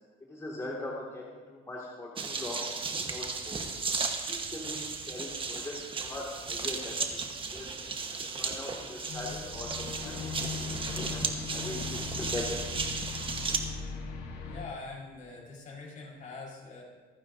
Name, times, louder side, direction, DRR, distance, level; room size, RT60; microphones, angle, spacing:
voice 1, 0.3-2.6 3.1-3.6 4.3-7.7 8.2-10.3 10.5-12.6, left 2 dB, 20° left, -4 dB, 2.2 m, -41 dB
sound 1, 2.2-13.6, right 4 dB, 30° right, 1.3 m, -35 dB
sound 2, 9.1-14.6, left 5 dB, 75° left, 2.1 m, -39 dB
voice 2, 14.5-16.8, left 3 dB, 50° left, -3 dB, 4.8 m, -43 dB
26.5 x 9.3 x 2.7 m, 1.4 s
cardioid pair, 110°, 17 cm